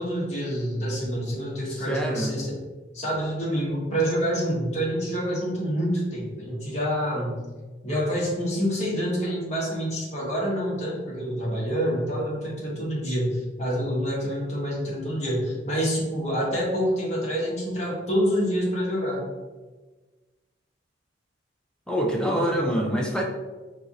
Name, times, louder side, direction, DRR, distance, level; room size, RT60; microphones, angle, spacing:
voice 1, 0.0-2.6 2.9-7.4 7.8-19.2 22.2-23.1, equal, 35° left, -5 dB, 1.3 m, -27 dB
voice 2, 1.7-2.4 21.9-23.2, equal, 5° left, 0 dB, 0.6 m, -25 dB
4.5 x 2.4 x 4.0 m, 1.3 s
head